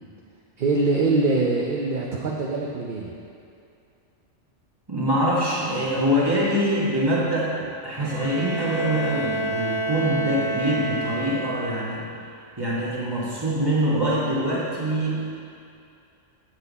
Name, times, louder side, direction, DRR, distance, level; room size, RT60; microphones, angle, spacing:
voice 1, 0.6-3.2, right 3 dB, 50° right, -2 dB, 0.8 m, -23 dB
voice 2, 4.9-7.5 7.8-12.1 12.6-15.3, equal, 20° right, -7 dB, 1.7 m, -24 dB
Bowed string instrument, 8.0-11.9, right 2 dB, 80° right, 1.5 m, -29 dB
8.1 x 7.9 x 4.1 m, 2.5 s
omnidirectional pair, 1.2 m